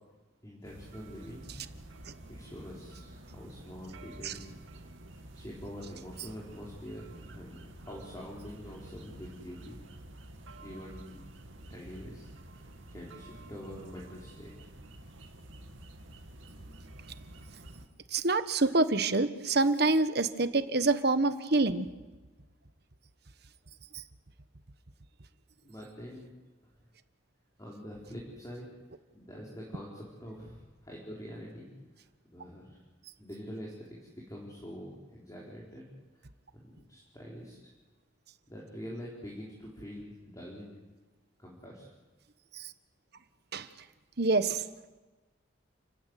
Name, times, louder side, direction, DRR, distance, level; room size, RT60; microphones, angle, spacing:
voice 1, 0.4-1.5 2.3-4.5 5.3-9.8 10.6-11.3 11.7-12.3 12.5-14.5 25.6-26.3 27.6-28.7 29.1-31.7 31.9-32.0 32.3-32.8 33.2-35.8 36.5-37.6 38.5-40.8 41.4-41.9, equal, 20° left, -4 dB, 4.8 m, -45 dB
sound 1, 0.6-17.9, right 1 dB, 90° right, 2.7 m, -50 dB
voice 2, 18.1-21.9 43.5-43.7 44.2-44.6, right 3 dB, 55° right, 11 dB, 1.3 m, -26 dB
30.0 x 15.5 x 9.4 m, 1.2 s
head